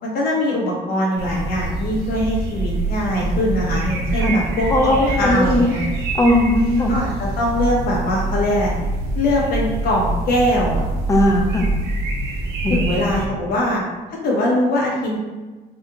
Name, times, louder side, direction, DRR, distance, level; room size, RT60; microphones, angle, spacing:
voice 1, 0.0-5.9 6.9-8.7 9.1-10.8 12.7-13.8 14.2-15.2, left 1 dB, 60° left, -3 dB, 1.2 m, -21 dB
sound 1, 1.2-13.3, right 2 dB, 75° right, 0.8 m, -25 dB
voice 2, 4.7-5.7 6.2-6.9 11.1-11.7 12.6-12.9, left 1 dB, 20° left, 1 dB, 0.6 m, -18 dB
4.1 x 2.9 x 2.4 m, 1.3 s
cardioid pair, 110°, 17 cm